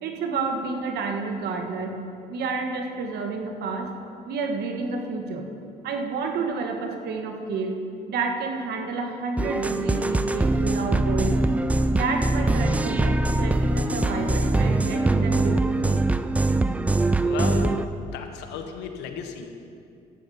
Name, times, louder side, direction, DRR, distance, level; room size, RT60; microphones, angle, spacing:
voice 1, 0.0-2.0 2.3-3.9 4.3-5.5 5.8-7.8 8.1-11.5 11.9-16.0, right 4 dB, 70° right, 4 dB, 1.4 m, -30 dB
sound 1, 9.4-17.8, right 2 dB, 10° right, 0.3 m, -23 dB
voice 2, 17.2-17.8 18.0-19.5, left 7 dB, 90° left, 6 dB, 1.1 m, -34 dB
12.0 x 8.1 x 5.5 m, 2.5 s
cardioid pair, 110°, 17 cm